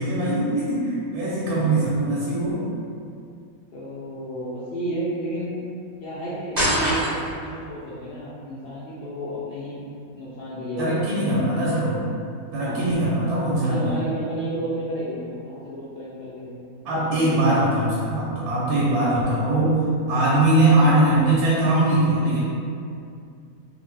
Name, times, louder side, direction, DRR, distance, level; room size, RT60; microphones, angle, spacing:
voice 1, 0.0-2.7 10.8-12.0 12.5-13.9 16.8-22.4, right 1 dB, 90° right, -7 dB, 1.1 m, -21 dB
voice 2, 1.4-1.7 3.7-5.5 6.0-9.8 10.1-11.6 12.6-12.8 13.6-16.6 16.9-17.4, right 1 dB, 80° left, -9 dB, 0.5 m, -32 dB
sound 1, 6.5-7.5, equal, 30° right, 0.9 m, -23 dB
2.9 x 2.0 x 3.1 m, 2.4 s
omnidirectional pair, 1.6 m